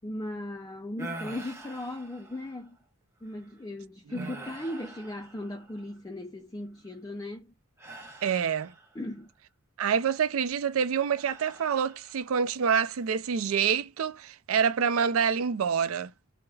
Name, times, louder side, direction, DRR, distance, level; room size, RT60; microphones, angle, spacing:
voice 1, 0.0-2.8 3.2-7.5 8.9-9.3, left 1 dB, 20° left, 0.4 m, -37 dB
sound 1, 1.0-2.7 3.3-3.5 4.1-6.0 7.8-9.1 11.2-12.3 12.7-13.1, right 2 dB, 15° right, 0.7 m, -45 dB
voice 2, 8.2-8.7 9.8-16.1, right 7 dB, 90° right, 0.4 m, -27 dB
4.7 x 2.1 x 2.3 m
head